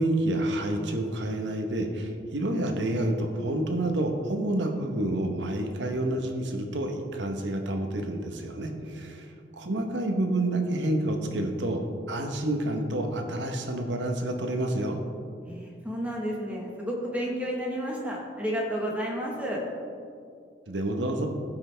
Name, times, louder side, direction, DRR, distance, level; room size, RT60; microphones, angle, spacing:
voice 1, 0.0-11.8 12.1-15.0 20.7-21.3, right 1 dB, 75° right, 4 dB, 1.0 m, -29 dB
voice 2, 15.4-19.6, equal, 10° right, -2 dB, 1.3 m, -31 dB
16.5 x 5.8 x 3.4 m, 2.3 s
head